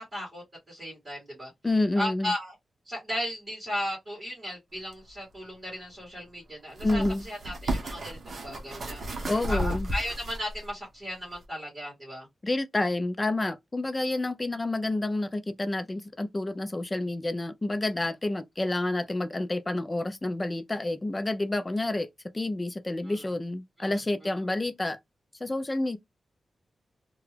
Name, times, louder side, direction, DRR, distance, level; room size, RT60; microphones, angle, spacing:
voice 1, 0.0-1.5 1.9-2.5 2.8-12.3 23.0-23.3 23.8-24.0, equal, 25° right, 1.7 m, -36 dB
voice 2, 1.6-2.3 6.8-7.2 9.3-9.9 12.4-22.1 22.3-25.0 25.4-26.0, left 2 dB, 20° left, 0.4 m, -29 dB
sound 1, 4.9-5.0 6.7-10.7 11.3-11.4, right 1 dB, 50° right, 0.8 m, -33 dB
2.9 x 2.3 x 3.2 m
wide cardioid pair, 150°, 0 cm